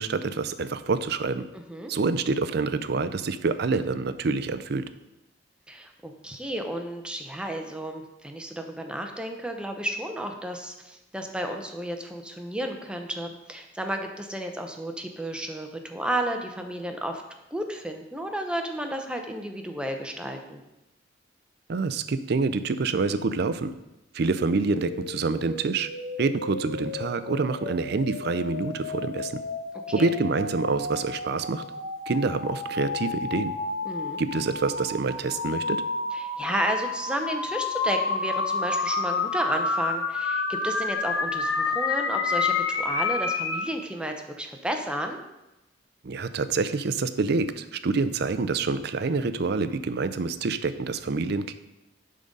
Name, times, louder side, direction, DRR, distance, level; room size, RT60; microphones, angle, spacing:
voice 1, 0.0-1.4 1.9-4.8 21.7-23.7 24.1-25.9 26.2-29.3 29.9-31.6 32.1-33.5 34.2-35.8 46.0-51.5, right 4 dB, 55° right, 12 dB, 0.5 m, -27 dB
voice 2, 1.5-1.9 5.7-17.2 17.5-20.6 30.0-30.1 33.8-34.2 36.1-45.2, right 1 dB, 5° right, 4 dB, 0.7 m, -32 dB
sound 1, 24.8-43.7, left 4 dB, 85° left, 1.1 m, -30 dB
10.5 x 3.8 x 5.3 m, 0.96 s
head